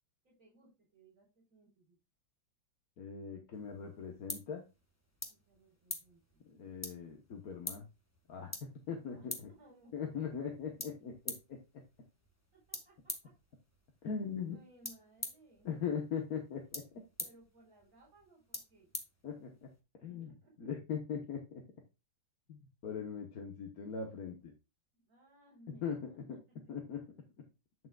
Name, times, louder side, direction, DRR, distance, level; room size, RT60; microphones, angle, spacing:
voice 1, 0.2-2.0 5.3-6.7 9.1-10.1 12.7-12.9 14.5-15.7 17.2-18.9 20.2-20.7 24.9-26.2, right 1 dB, 45° right, -5 dB, 4.3 m, -62 dB
voice 2, 3.0-4.6 6.5-7.9 8.3-9.5 9.9-11.8 14.0-14.6 15.6-17.0 19.2-19.7 20.0-20.3 20.6-21.6 22.5-24.5 25.7-26.4 26.7-27.0, left 6 dB, 55° left, 2 dB, 1.5 m, -40 dB
sound 1, 3.5-19.8, left 1 dB, 10° left, 1.0 m, -48 dB
8.7 x 7.6 x 2.3 m, 0.27 s
omnidirectional pair, 2.0 m